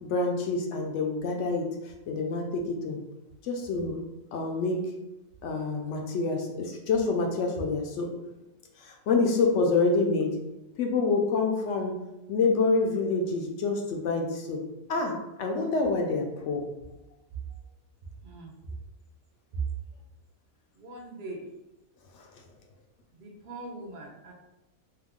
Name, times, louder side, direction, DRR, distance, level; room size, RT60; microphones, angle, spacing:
voice 1, 0.0-1.7 2.1-3.0 3.4-4.0 4.3-4.8 5.4-8.1 8.8-10.3 10.8-11.9 12.3-14.6 14.9-16.6, left 3 dB, 65° left, 2 dB, 0.8 m, -27 dB
voice 2, 18.2-18.5 19.5-19.6 20.8-21.5 23.1-24.3, right 3 dB, 60° right, 0 dB, 0.5 m, -40 dB
2.8 x 2.3 x 3.5 m, 0.95 s
omnidirectional pair, 1.5 m